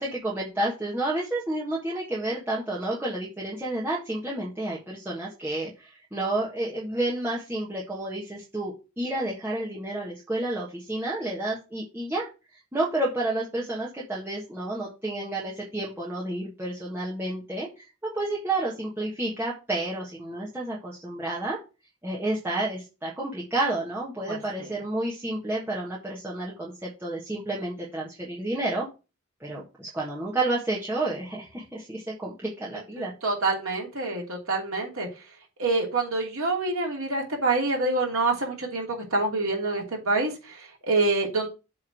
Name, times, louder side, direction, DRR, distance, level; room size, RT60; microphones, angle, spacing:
voice 1, 0.0-12.3 12.7-21.6 22.0-28.9 29.4-33.1, right 2 dB, 10° right, -6 dB, 1.5 m, -30 dB
voice 2, 24.3-24.7 33.0-35.1 35.6-41.5, right 3 dB, 85° right, -1 dB, 3.0 m, -27 dB
7.7 x 3.6 x 6.2 m, 0.29 s
head